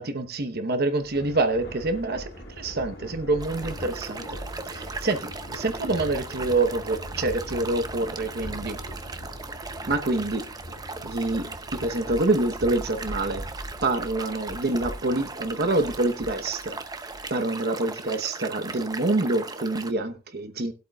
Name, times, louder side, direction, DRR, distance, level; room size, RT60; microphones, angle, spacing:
voice 1, 0.0-4.4 4.7-8.8 9.9-10.5 11.0-13.5 13.8-16.8 17.3-20.7, right 2 dB, 50° right, 1.0 m, -26 dB
Thunder, 1.0-17.6, equal, 50° left, 4.5 m, -41 dB
sound 1, 3.4-19.9, right 3 dB, 20° right, 0.6 m, -38 dB
19.5 x 8.2 x 2.3 m
head